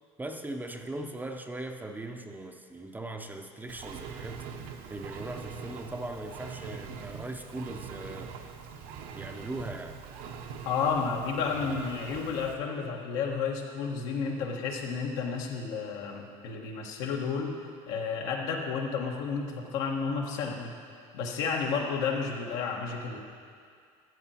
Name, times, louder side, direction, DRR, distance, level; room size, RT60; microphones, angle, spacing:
voice 1, 0.2-4.5 4.9-8.3 9.2-10.0, right 2 dB, 10° right, 4 dB, 0.7 m, -39 dB
Engine, 3.7-12.5, right 6 dB, 65° right, 1.0 m, -43 dB
voice 2, 10.6-17.5 17.9-20.7 21.1-23.2, left 5 dB, 75° left, 0 dB, 1.6 m, -31 dB
14.0 x 7.9 x 4.4 m, 2.2 s
supercardioid pair, 120°, 15 cm